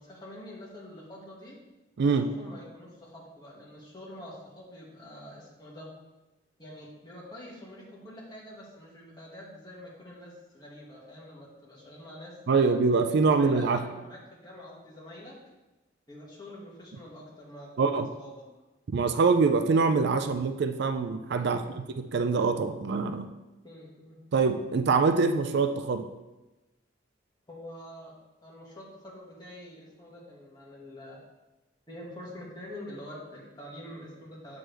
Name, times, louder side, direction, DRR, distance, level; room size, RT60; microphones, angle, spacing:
voice 1, 0.0-1.6 2.2-5.9 6.6-12.8 13.2-15.4 16.1-18.4 21.4-21.7 23.6-24.2 27.5-28.2 28.4-31.2 31.9-34.6, left 1 dB, 20° left, -5 dB, 1.8 m, -46 dB
voice 2, 12.5-13.8 17.8-18.1 18.9-21.6 22.0-23.3 24.3-26.1, right 4 dB, 60° right, 8 dB, 0.4 m, -24 dB
7.5 x 6.2 x 3.4 m, 1.1 s
head